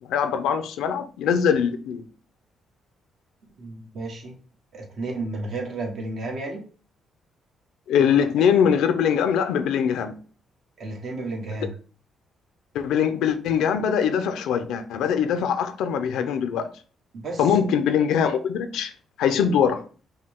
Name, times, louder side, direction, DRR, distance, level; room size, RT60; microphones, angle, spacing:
voice 1, 0.0-2.0 7.9-10.1 12.7-16.7 17.4-18.9 19.2-19.8, left 7 dB, 85° left, 0.5 m, -22 dB
voice 2, 3.6-4.4 4.7-6.7 10.8-11.8 17.1-17.5, right 2 dB, 65° right, 1.4 m, -32 dB
5.6 x 2.3 x 3.5 m
cardioid pair, 90°, 0 cm